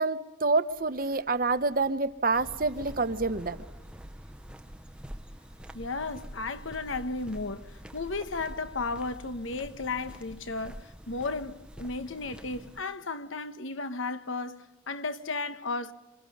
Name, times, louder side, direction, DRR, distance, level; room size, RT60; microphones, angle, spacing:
voice 1, 0.0-3.6, right 3 dB, 45° right, 0.9 m, -27 dB
sound 1, 0.7-9.2, equal, 60° left, 7.6 m, -58 dB
sound 2, 2.3-12.8, equal, 5° right, 0.7 m, -46 dB
voice 2, 5.7-15.9, left 3 dB, 90° left, 1.1 m, -34 dB
27.0 x 25.5 x 5.5 m
head